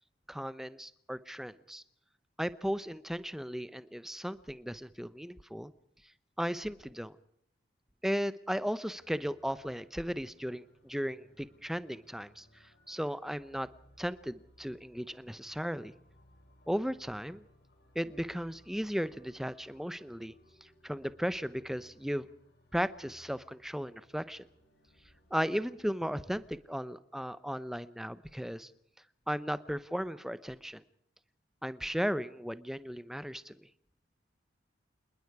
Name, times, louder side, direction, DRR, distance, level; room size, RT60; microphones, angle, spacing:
voice 1, 0.3-1.8 2.4-5.7 6.4-7.2 8.0-12.5 12.9-13.7 14.0-15.9 16.7-17.4 17.9-20.3 20.6-22.3 22.7-24.5 25.3-28.7 29.3-30.8 31.6-33.6, equal, ahead, 15 dB, 0.8 m, -36 dB
sound 1, 8.9-25.8, equal, 60° left, 6.4 m, -64 dB
27.5 x 20.5 x 4.8 m, 0.72 s
head